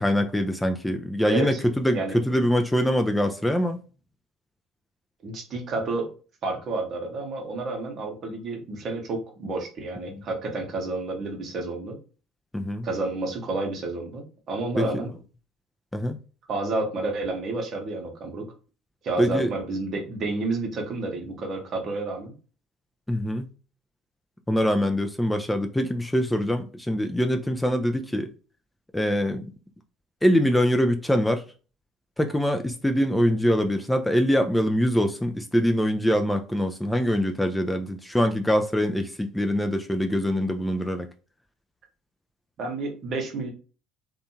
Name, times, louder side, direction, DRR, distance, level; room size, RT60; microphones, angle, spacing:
voice 1, 0.0-3.8 10.1-10.2 12.5-12.9 14.8-14.9 15.9-16.2 19.2-19.5 23.1-23.5 24.5-28.3 28.9-29.5 30.2-31.4 32.2-41.1, equal, 5° left, 0.3 m, -24 dB
voice 2, 1.3-1.6 1.9-2.2 5.2-6.1 6.4-12.0 12.8-15.1 16.5-18.5 19.0-22.3 42.6-43.5, right 2 dB, 45° right, 0.8 m, -30 dB
2.6 x 2.2 x 2.6 m
figure-of-eight pair, 60°, 0 cm